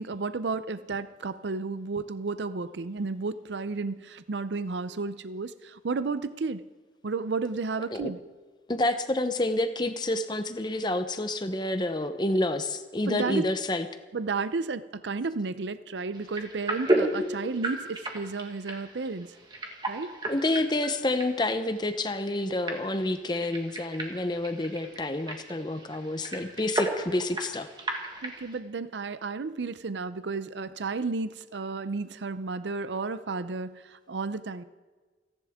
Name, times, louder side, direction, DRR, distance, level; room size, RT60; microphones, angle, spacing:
voice 1, 0.0-6.6 7.0-8.2 13.1-13.5 14.1-19.3 19.9-20.1 28.2-34.6, right 4 dB, 85° right, 14 dB, 0.6 m, -32 dB
voice 2, 8.7-13.9 20.3-27.7, left 1 dB, 25° left, 8 dB, 0.8 m, -28 dB
sound 1, 16.1-28.6, right 1 dB, 25° right, 1.7 m, -34 dB
29.5 x 10.5 x 3.6 m, 1.4 s
head